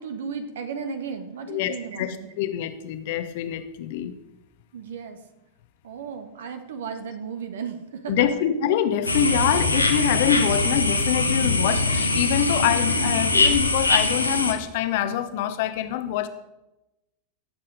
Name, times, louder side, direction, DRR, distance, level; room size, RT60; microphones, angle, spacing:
voice 1, 0.0-2.3 4.7-5.2 5.8-8.3, right 6 dB, 60° right, 8 dB, 1.6 m, -34 dB
voice 2, 1.5-4.2 8.1-16.3, left 10 dB, 50° left, 10 dB, 1.2 m, -25 dB
sound 1, 9.1-14.5, left 3 dB, 85° left, 1.6 m, -22 dB
17.5 x 7.5 x 5.1 m, 0.96 s
figure-of-eight pair, 90°, 0 cm